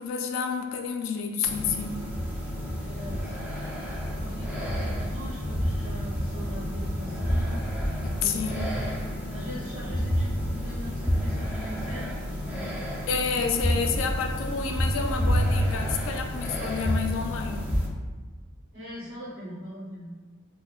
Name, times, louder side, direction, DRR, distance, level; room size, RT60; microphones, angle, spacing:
voice 1, 0.0-2.1 8.0-8.7 13.1-17.8, left 5 dB, 70° left, 4 dB, 0.3 m, -29 dB
sound 1, 1.4-17.9, equal, 10° right, 0.5 m, -29 dB
voice 2, 2.8-3.7 4.1-7.6 8.1-13.1 13.6-14.4 18.7-20.1, equal, 75° right, -10 dB, 1.0 m, -41 dB
4.1 x 2.1 x 2.3 m, 1.4 s
head